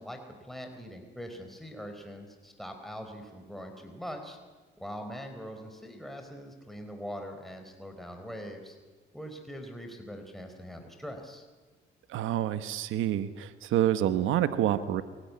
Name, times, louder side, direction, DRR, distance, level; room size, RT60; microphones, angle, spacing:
voice 1, 0.0-4.4 4.8-8.8 9.1-11.5, equal, ahead, 4 dB, 4.3 m, -42 dB
voice 2, 12.1-15.0, right 12 dB, 85° right, 11 dB, 1.2 m, -27 dB
27.0 x 18.0 x 9.6 m, 1.3 s
cardioid pair, 90°, 20 cm